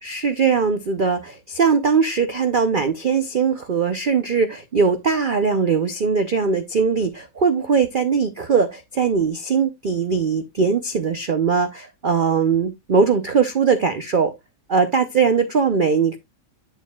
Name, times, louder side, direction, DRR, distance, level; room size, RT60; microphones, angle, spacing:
voice 1, 0.0-14.3 14.7-16.2, right 5 dB, 85° right, 0.4 m, -20 dB
8.5 x 7.8 x 2.3 m
omnidirectional pair, 1.9 m